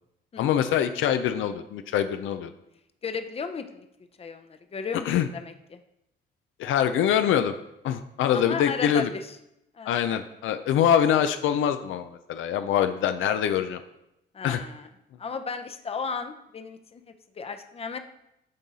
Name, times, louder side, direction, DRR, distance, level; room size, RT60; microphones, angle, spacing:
voice 1, 0.4-2.5 5.1-5.3 6.6-7.5 7.8-9.1 9.9-13.8 14.4-14.6, left 9 dB, 80° left, 9 dB, 0.5 m, -24 dB
voice 2, 3.0-3.9 4.2-5.1 5.3-5.8 8.3-9.3 9.8-10.2 14.3-14.9 15.2-18.0, left 5 dB, 30° left, 8 dB, 0.6 m, -35 dB
8.7 x 3.9 x 4.1 m, 0.84 s
cardioid pair, 90°, 20 cm